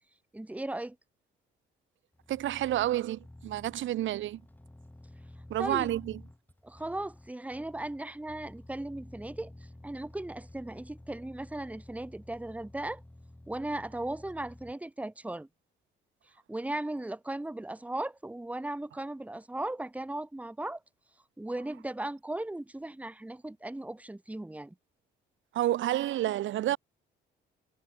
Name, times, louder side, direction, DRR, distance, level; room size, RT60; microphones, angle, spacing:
voice 1, 0.3-1.0 5.6-5.9 6.6-9.5 9.8-13.0 13.5-15.5 16.5-20.8 21.4-24.7, right 1 dB, 5° right, 1.3 m, -37 dB
sound 1, 2.1-14.7, left 1 dB, 10° left, 7.8 m, -52 dB
voice 2, 2.3-4.4 5.5-6.2 25.5-26.8, right 14 dB, 75° right, 1.1 m, -29 dB
cardioid pair, 90°, 20 cm